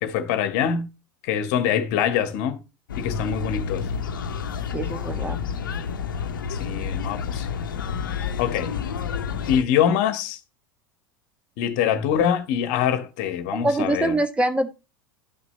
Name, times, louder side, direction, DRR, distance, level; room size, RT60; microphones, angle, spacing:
voice 1, 0.0-0.9 1.2-2.6 3.0-3.9 6.5-7.5 8.1-8.7 9.5-10.4 11.6-14.2, left 9 dB, 55° left, 1.3 m, -24 dB
sound 1, 2.9-9.6, left 6 dB, 75° left, 0.9 m, -29 dB
voice 2, 4.7-5.4 13.5-14.7, right 2 dB, 10° right, 1.5 m, -24 dB
12.0 x 6.1 x 3.1 m
figure-of-eight pair, 75°, 11 cm